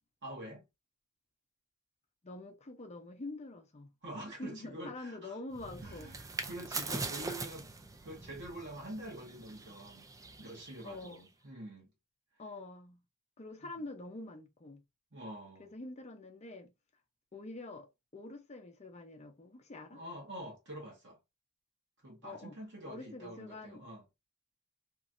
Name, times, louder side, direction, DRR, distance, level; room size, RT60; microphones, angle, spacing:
voice 1, 0.2-0.6 4.0-5.4 5.8-7.7 8.0-10.1 10.4-11.9 15.1-15.7 19.9-21.2 22.0-24.0, right 1 dB, 55° right, 1.2 m, -46 dB
voice 2, 2.2-3.9 4.4-6.1 10.8-11.3 12.4-13.0 13.4-14.8 15.6-16.7 17.3-20.0 22.2-22.5 22.9-23.8, left 2 dB, 30° left, 0.6 m, -46 dB
sound 1, 5.5-11.3, right 3 dB, 15° right, 0.3 m, -43 dB
2.9 x 2.6 x 2.5 m
head